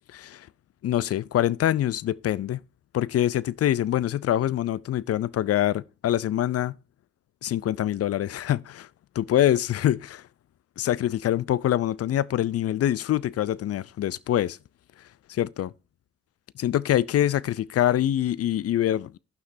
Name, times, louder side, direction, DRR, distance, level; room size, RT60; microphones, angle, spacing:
voice 1, 0.1-0.5 0.8-2.6 2.9-6.7 7.4-8.9 9.2-10.2 10.8-14.6 15.3-15.7 16.6-19.2, left 12 dB, 50° left, 0.4 m, -25 dB
14.5 x 5.8 x 2.7 m
hypercardioid pair, 40°, 32 cm